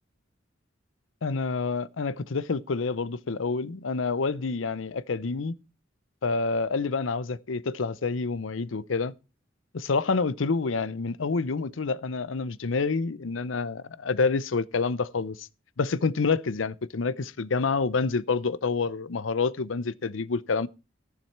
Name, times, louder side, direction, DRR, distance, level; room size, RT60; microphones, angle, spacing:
voice 1, 1.2-5.5 6.2-9.1 9.7-15.5 15.8-20.7, left 4 dB, 90° left, 0.6 m, -28 dB
14.5 x 7.4 x 4.6 m
head